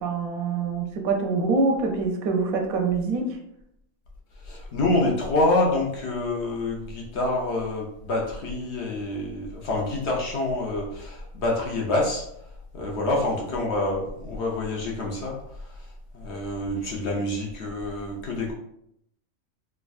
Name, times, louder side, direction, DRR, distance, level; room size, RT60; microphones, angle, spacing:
voice 1, 0.0-3.4, right 4 dB, 85° right, 3 dB, 1.0 m, -25 dB
voice 2, 4.4-12.3 12.7-15.9 16.1-18.5, left 2 dB, 60° left, -1 dB, 0.8 m, -27 dB
3.4 x 2.2 x 2.3 m, 0.76 s
omnidirectional pair, 1.5 m